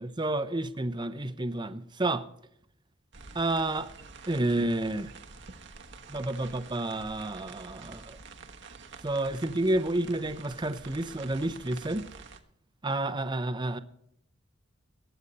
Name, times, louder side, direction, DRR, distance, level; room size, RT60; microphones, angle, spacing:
voice 1, 0.0-2.2 3.3-3.9 4.3-5.1 6.1-8.2 9.0-12.0 12.8-13.8, right 2 dB, 20° right, 0.8 m, -30 dB
sound 1, 3.1-12.4, right 4 dB, 60° right, 1.2 m, -48 dB
21.0 x 8.2 x 4.2 m
head